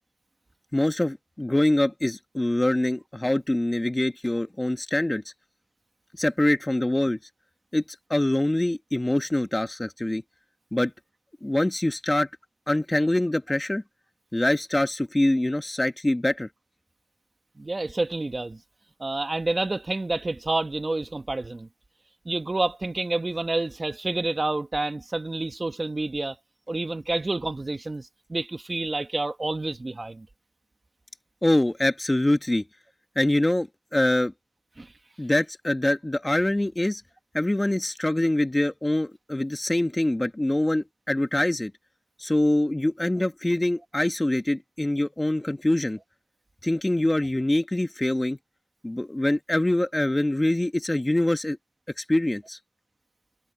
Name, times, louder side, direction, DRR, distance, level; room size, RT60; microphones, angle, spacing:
voice 1, 0.7-5.2 6.2-7.2 7.7-7.8 8.1-10.2 10.7-10.9 11.4-12.3 12.7-13.8 14.3-16.5 31.4-32.6 33.1-34.3 35.2-37.0 37.3-41.7 42.2-46.0 46.6-48.4 48.8-51.6 52.0-52.6, left 1 dB, 20° left, 1.2 m, -24 dB
voice 2, 17.6-18.6 19.0-21.7 22.2-26.4 26.7-30.3 34.8-34.9, right 2 dB, 40° right, 1.1 m, -29 dB
wide cardioid pair, 80°, 0 cm